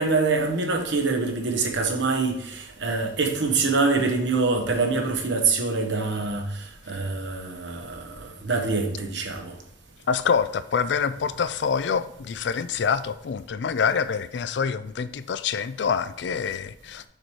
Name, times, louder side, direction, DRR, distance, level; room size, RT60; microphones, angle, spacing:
voice 1, 0.0-9.5, right 4 dB, 70° right, 1.1 m, -25 dB
voice 2, 10.1-17.0, left 6 dB, 70° left, 0.4 m, -26 dB
6.6 x 4.6 x 4.7 m
head